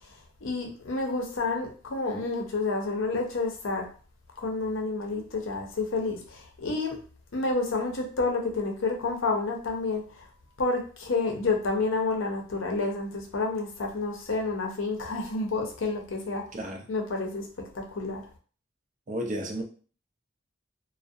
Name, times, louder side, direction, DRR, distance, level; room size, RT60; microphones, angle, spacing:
voice 1, 0.4-3.9 4.4-7.0 7.3-10.0 10.6-16.4 16.9-17.5 17.7-18.2, left 3 dB, 70° left, 2 dB, 0.6 m, -29 dB
voice 2, 16.5-16.9 19.1-19.6, right 1 dB, 35° right, 3 dB, 0.4 m, -32 dB
2.3 x 2.0 x 2.6 m, 0.39 s
head